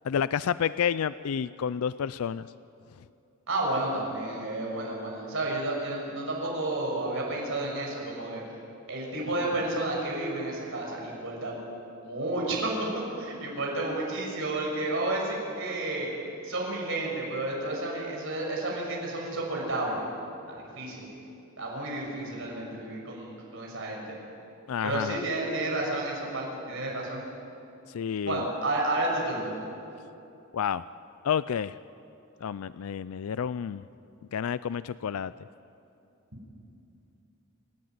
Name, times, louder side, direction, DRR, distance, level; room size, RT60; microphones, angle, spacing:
voice 1, 0.0-2.4 24.7-25.2 27.9-28.5 30.5-30.8 31.2-31.8 32.4-33.8 34.3-35.3, left 7 dB, 85° left, 16 dB, 0.4 m, -29 dB
voice 2, 3.5-8.4 8.9-11.5 12.0-12.7 13.2-16.1 16.4-20.0 20.5-21.1 21.6-24.0 24.8-27.3 28.2-29.5, right 2 dB, 65° right, -2 dB, 6.5 m, -31 dB
29.5 x 12.0 x 9.4 m, 2.8 s
head